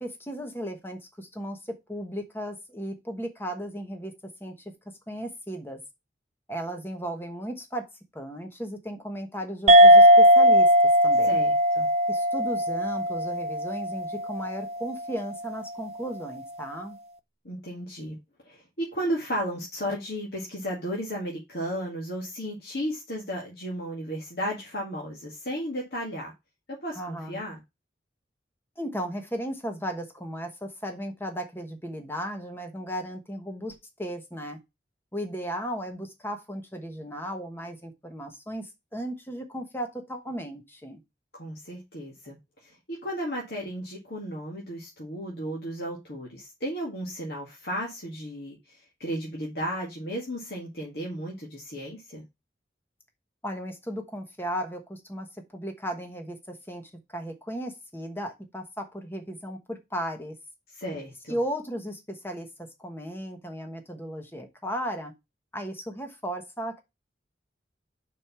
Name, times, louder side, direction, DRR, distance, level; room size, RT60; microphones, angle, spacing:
voice 1, 0.0-4.1 4.4-4.7 5.1-5.8 6.5-11.4 12.1-17.0 26.9-27.4 28.8-34.6 35.1-41.0 53.4-55.3 55.5-60.4 61.3-65.1 65.5-66.8, equal, 10° left, 5 dB, 1.2 m, -35 dB
sound 1, 9.7-14.6, equal, 35° right, 0.4 m, -18 dB
voice 2, 11.2-11.9 17.4-18.2 18.4-26.3 26.8-27.6 41.3-52.2 60.7-61.4, equal, 65° left, -2 dB, 2.0 m, -34 dB
5.2 x 4.5 x 5.7 m, 0.22 s
head